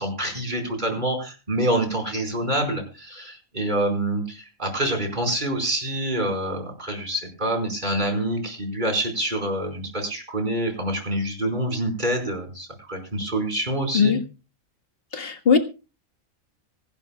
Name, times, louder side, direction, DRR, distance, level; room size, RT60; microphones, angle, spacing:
voice 1, 0.0-14.2, right 1 dB, 35° right, 3 dB, 5.0 m, -26 dB
voice 2, 15.1-15.6, left 6 dB, 45° left, 4 dB, 1.8 m, -19 dB
25.0 x 12.0 x 2.3 m, 0.32 s
omnidirectional pair, 1.4 m